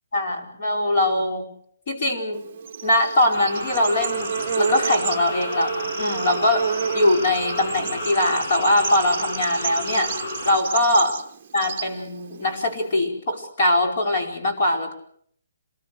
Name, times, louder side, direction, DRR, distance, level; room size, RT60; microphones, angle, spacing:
voice 1, 0.1-1.4 1.9-2.5 2.8-6.7 6.9-10.1 10.4-11.2 11.5-14.9, left 1 dB, 35° left, 1 dB, 4.7 m, -22 dB
Bird / Insect, 2.3-12.9, right 7 dB, 25° right, 1.3 m, -31 dB
sound 1, 3.3-10.6, left 2 dB, 50° left, 6.2 m, -32 dB
27.0 x 20.5 x 6.5 m, 0.63 s
hypercardioid pair, 180°, 0 cm